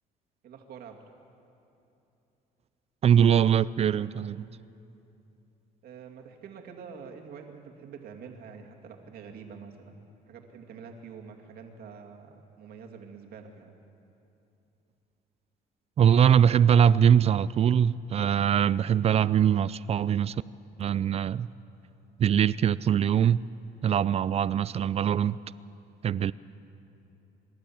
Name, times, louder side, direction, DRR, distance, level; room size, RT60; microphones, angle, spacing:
voice 1, 0.4-1.0 5.8-13.7, right 6 dB, 65° right, 2.4 m, -46 dB
voice 2, 3.0-4.5 16.0-20.4 20.8-21.5 22.2-23.4 23.8-25.4 26.0-26.3, right 9 dB, 40° right, 0.4 m, -22 dB
25.5 x 12.0 x 8.7 m
cardioid pair, 110°, 17 cm